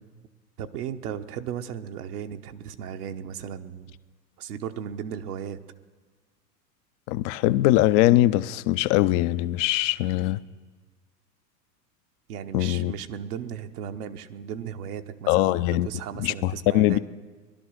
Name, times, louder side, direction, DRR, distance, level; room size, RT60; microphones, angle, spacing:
voice 1, 0.6-4.0 4.4-5.6 12.3-17.0, right 8 dB, 65° right, 7 dB, 1.1 m, -36 dB
voice 2, 7.1-10.4 12.5-12.9 15.3-15.9 16.2-17.0, left 15 dB, 35° left, 16 dB, 0.4 m, -22 dB
19.0 x 11.5 x 6.4 m, 1.4 s
figure-of-eight pair, 90°, 50 cm